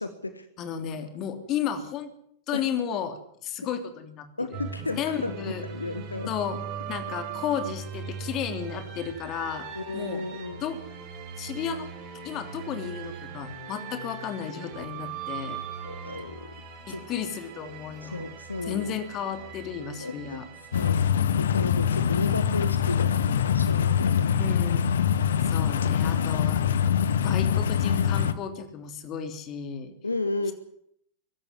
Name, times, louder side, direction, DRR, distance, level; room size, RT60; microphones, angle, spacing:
voice 1, 0.0-0.5 2.5-2.6 4.4-6.3 9.7-10.6 14.8-14.9 15.8-16.5 16.9-17.0 18.0-18.9 20.0-20.4 20.7-21.0 21.4-24.4 30.0-30.5, left 2 dB, 80° left, 11 dB, 1.4 m, -33 dB
voice 2, 0.6-2.1 2.5-5.6 6.3-6.6 6.9-9.7 9.9-10.2 10.6-10.8 11.4-15.6 16.9-18.3 18.6-20.5 24.3-25.0 25.4-26.6 27.2-29.9, left 8 dB, 35° left, 7 dB, 3.3 m, -33 dB
sound 1, 4.5-20.9, right 6 dB, 45° right, 4.0 m, -40 dB
sound 2, 20.7-28.3, left 8 dB, 65° left, 1.3 m, -24 dB
24.0 x 12.5 x 9.7 m, 0.69 s
figure-of-eight pair, 90°, 0 cm